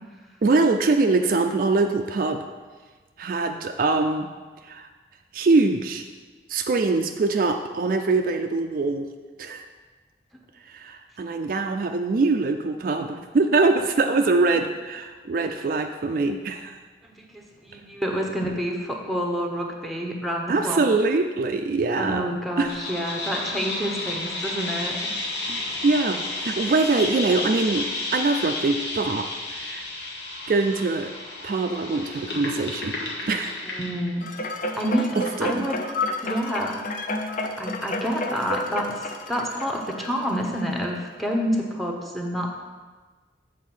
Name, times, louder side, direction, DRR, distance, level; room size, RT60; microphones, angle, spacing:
voice 1, 0.4-2.4 3.2-4.3 4.6-4.9 5.3-6.0 6.5-9.1 9.4-9.6 10.7-16.8 20.5-22.7 25.5-29.8 30.5-31.1 31.4-32.9 33.3-33.6 35.2-35.7, right 3 dB, 50° right, 5 dB, 0.4 m, -23 dB
voice 2, 17.0-20.8 21.9-25.1 33.8-34.3 34.8-35.8 36.2-36.7 37.6-42.5, equal, ahead, 0 dB, 0.8 m, -28 dB
sound 1, 22.6-34.1, left 2 dB, 75° left, 1.3 m, -32 dB
sound 2, 34.2-40.8 41.3-41.4, left 2 dB, 45° left, 0.5 m, -31 dB
7.4 x 4.1 x 6.2 m, 1.4 s
head